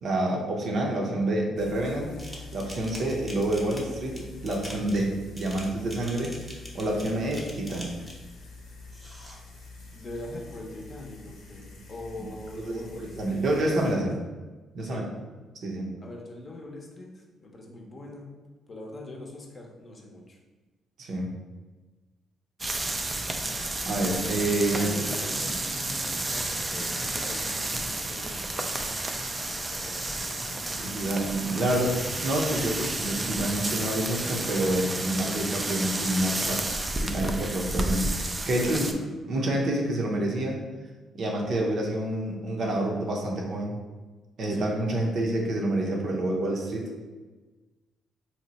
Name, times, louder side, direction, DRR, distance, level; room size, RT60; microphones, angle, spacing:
voice 1, 0.0-2.1 2.5-8.0 12.6-12.7 13.2-14.1 14.7-15.0 15.6-15.9 21.0-21.3 23.9-24.9 30.7-36.6 37.0-38.9 39.3-40.6 41.1-43.8 44.4-46.9, right 1 dB, 60° right, 0 dB, 0.6 m, -28 dB
sound 1, 1.6-13.9, left 3 dB, 75° left, 0.7 m, -46 dB
sound 2, 2.2-8.3 8.9-9.4, equal, 5° right, 0.8 m, -44 dB
voice 2, 9.9-14.1 14.8-15.1 16.0-18.3 18.7-20.4 24.6-29.1 29.4-30.9 35.6-35.9 36.3-36.6 38.5-39.1 41.5-41.7 44.5-44.8, left 1 dB, 35° left, 0 dB, 0.6 m, -42 dB
sound 3, 22.6-38.9, right 2 dB, 20° right, 0.3 m, -31 dB
2.8 x 2.1 x 4.0 m, 1.3 s
cardioid pair, 90°, 0 cm